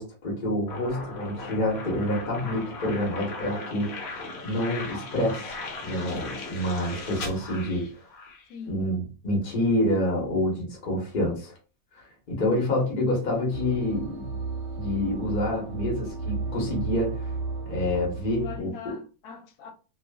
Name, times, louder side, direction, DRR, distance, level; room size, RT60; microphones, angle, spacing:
voice 1, 0.0-4.0 4.4-5.5 5.8-7.9 8.7-11.5 12.3-14.4 14.8-17.3 17.7-18.9, left 1 dB, 40° left, 0.9 m, -27 dB
sound 1, 0.7-8.5, left 3 dB, 70° left, 1.1 m, -38 dB
voice 2, 8.5-8.9 18.2-19.7, left 6 dB, 90° left, 1.1 m, -41 dB
sound 2, 13.5-18.6, right 4 dB, 65° right, 0.9 m, -33 dB
2.4 x 2.4 x 2.2 m
omnidirectional pair, 1.6 m